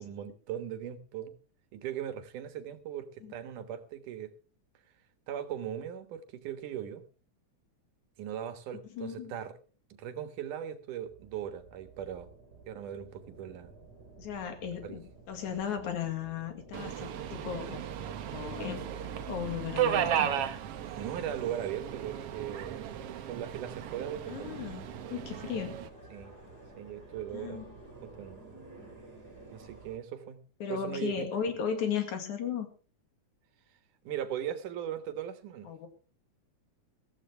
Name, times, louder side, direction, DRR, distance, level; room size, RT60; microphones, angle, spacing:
voice 1, 0.0-1.3 1.7-4.3 5.3-7.0 8.2-9.6 9.9-12.3 12.7-13.7 14.8-15.0 21.0-24.5 26.1-26.3 26.8-27.6 28.0-28.4 29.5-30.4 30.7-31.3 34.0-35.7, right 10 dB, 90° right, 9 dB, 2.9 m, -39 dB
voice 2, 8.9-9.4 14.2-15.0 15.3-17.8 18.3-18.8 19.3-20.3 24.3-25.7 27.3-27.7 30.6-32.7 35.7-35.9, left 7 dB, 75° left, 6 dB, 3.5 m, -35 dB
sound 1, 11.0-30.0, right 2 dB, 30° right, 5.2 m, -53 dB
Subway metro underground, 16.7-25.9, right 10 dB, 65° right, 1.7 m, -35 dB
15.0 x 15.0 x 3.4 m, 0.36 s
omnidirectional pair, 3.5 m